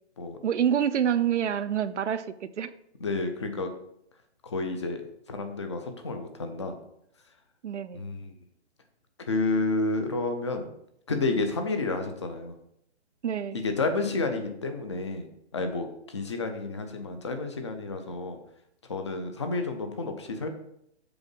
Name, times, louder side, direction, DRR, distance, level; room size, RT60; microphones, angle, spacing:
voice 1, 0.4-2.7 7.6-8.0 13.2-13.6, right 9 dB, 80° right, 13 dB, 0.7 m, -27 dB
voice 2, 3.0-3.7 4.4-5.0 5.3-6.7 7.9-8.3 9.3-10.7 11.1-12.5 13.5-15.3 15.5-18.4 18.9-20.5, left 3 dB, 25° left, 7 dB, 0.6 m, -30 dB
7.0 x 4.5 x 5.3 m, 0.75 s
hypercardioid pair, 170°, 34 cm